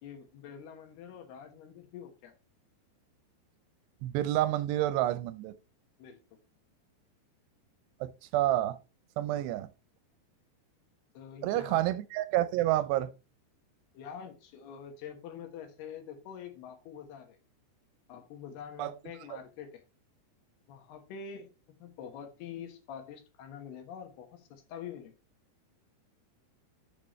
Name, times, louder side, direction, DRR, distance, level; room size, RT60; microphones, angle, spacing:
voice 1, 0.0-2.3 6.0-6.2 11.1-11.8 13.9-17.4 18.1-19.8 20.7-25.1, left 7 dB, 70° left, 3.2 m, -46 dB
voice 2, 4.0-5.5 8.0-8.8 9.2-9.7 11.4-13.1 18.8-18.9 19.3-19.4, right 14 dB, 80° right, 2.6 m, -29 dB
12.0 x 6.6 x 3.1 m
omnidirectional pair, 5.0 m